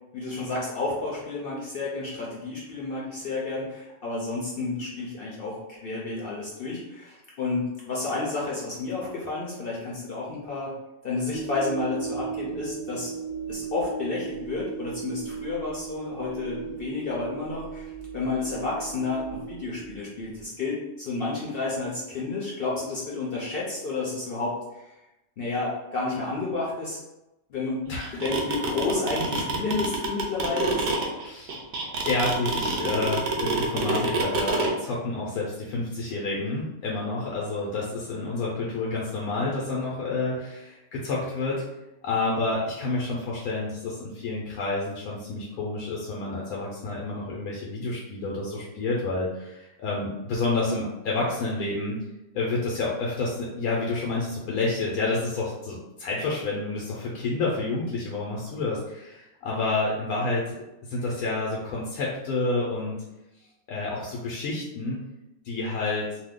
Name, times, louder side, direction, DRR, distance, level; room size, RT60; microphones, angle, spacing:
voice 1, 0.1-10.7 11.0-13.1 13.5-24.9 25.4-27.0 27.5-27.9 28.1-30.9, left 3 dB, 60° left, -5 dB, 0.6 m, -31 dB
sound 1, 11.3-20.4, right 7 dB, 25° right, 0.4 m, -37 dB
voice 2, 27.9-28.2 31.2-31.5 32.0-41.6 42.0-52.0 52.3-60.6 60.8-63.0 63.7-65.1 65.4-66.1, left 3 dB, 90° left, -4 dB, 1.1 m, -29 dB
sound 2, 28.0-34.7, right 3 dB, 60° right, 0.7 m, -26 dB
2.7 x 2.2 x 3.5 m, 0.96 s
omnidirectional pair, 1.5 m